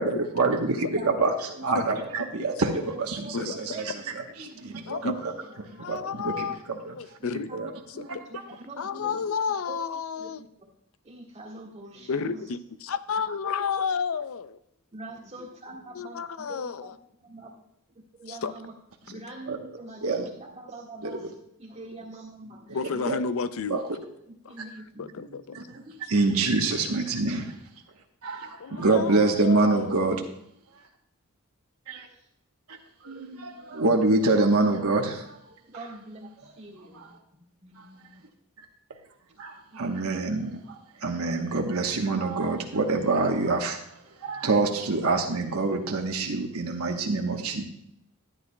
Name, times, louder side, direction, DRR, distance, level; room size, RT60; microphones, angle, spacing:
voice 1, 0.0-2.7 3.0-3.9 4.6-4.8 5.2-5.3 5.6-6.9 7.3-7.7 19.5-19.6 20.0-20.2 21.0-21.2 23.1-23.2 23.7-23.8 25.5-25.6 26.1-27.6 28.2-30.2 31.9-32.1 32.7-32.8 33.0-35.4 36.9-37.1 37.8-37.9 39.4-43.8 44.2-47.6, right 3 dB, 85° right, 2 dB, 1.1 m, -26 dB
voice 2, 0.7-2.2 2.6-2.7 2.9-3.3 3.7-4.1 4.4-5.3 5.6-6.6 7.2-9.3 9.7-9.8 10.1-10.7 11.0-12.4 14.9-16.9 17.2-17.6 18.2-18.7 19.1-21.2 21.6-23.2 24.3-25.5 25.9-26.2 32.1-32.3 35.7-37.2 37.6-38.2 39.7-39.8 40.1-40.2 41.0-41.1 44.3-44.5, right 1 dB, 30° right, -3 dB, 1.6 m, -44 dB
voice 3, 5.8-6.6 6.9-7.5 8.8-10.4 12.1-14.6 15.9-16.9 18.3-18.5 22.7-23.8 24.4-24.6 25.0-25.6 28.6-30.1, left 5 dB, 70° left, 13 dB, 0.5 m, -31 dB
13.5 x 9.9 x 2.2 m, 0.75 s
head